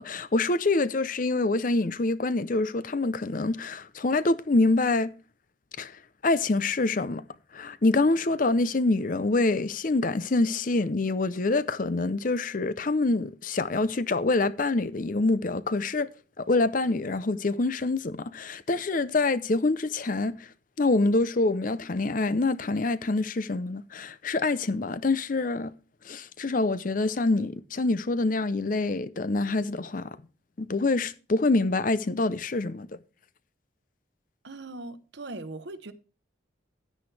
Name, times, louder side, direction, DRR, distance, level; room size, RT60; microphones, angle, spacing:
voice 1, 0.0-5.1 5.8-5.9 6.2-7.2 7.5-16.1 16.4-20.5 20.8-25.7 26.1-30.2 30.6-32.9, left 2 dB, 40° left, 0.6 m, -26 dB
voice 2, 34.4-35.9, right 2 dB, 60° right, 0.9 m, -39 dB
10.5 x 10.0 x 3.3 m
head